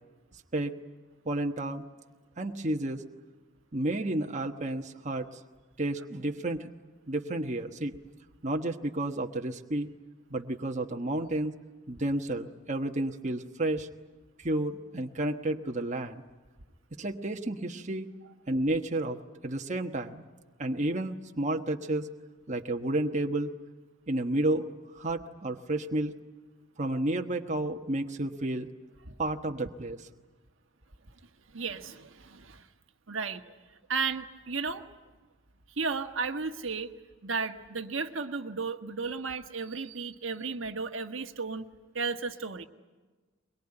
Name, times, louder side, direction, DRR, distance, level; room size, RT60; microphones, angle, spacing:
voice 1, 1.2-1.8 2.4-3.0 3.7-5.4 5.8-6.7 7.1-7.9 8.4-9.9 10.3-11.6 11.9-13.9 14.4-16.2 17.0-18.1 18.5-20.2 20.6-22.1 22.5-23.5 24.1-26.2 26.8-28.7 29.2-30.1, right 1 dB, 35° right, 3 dB, 1.2 m, -31 dB
voice 2, 31.5-32.7 33.1-33.5 33.9-34.8 35.7-36.9 37.2-41.6 41.9-42.6, right 4 dB, 65° right, 7 dB, 1.4 m, -34 dB
23.0 x 22.5 x 9.9 m, 1.3 s
head